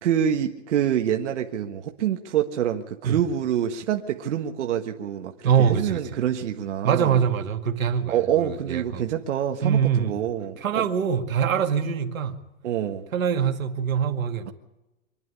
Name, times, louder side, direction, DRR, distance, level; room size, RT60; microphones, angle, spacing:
voice 1, 0.0-7.2 8.1-10.8 12.6-13.0, right 10 dB, 60° right, 1.6 m, -26 dB
voice 2, 5.4-6.0 6.8-9.0 9.6-10.2 10.6-12.4 13.1-14.5, right 7 dB, 85° right, 2.2 m, -23 dB
25.0 x 10.5 x 9.9 m
hypercardioid pair, 155°, 40 cm